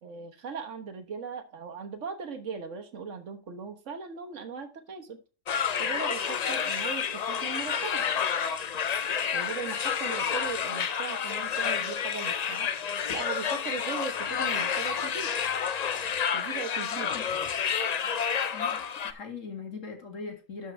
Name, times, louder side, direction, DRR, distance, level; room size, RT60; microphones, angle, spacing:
voice 1, 0.0-5.2 5.8-8.1 9.3-12.7 13.1-15.3 16.3-17.5, right 5 dB, 70° right, 6 dB, 1.6 m, -39 dB
sound 1, 5.5-19.1, left 7 dB, 50° left, 0.5 m, -29 dB
voice 2, 16.9-17.3 18.5-20.7, left 5 dB, 75° left, 4 dB, 2.3 m, -41 dB
12.5 x 5.3 x 3.3 m, 0.34 s
omnidirectional pair, 1.3 m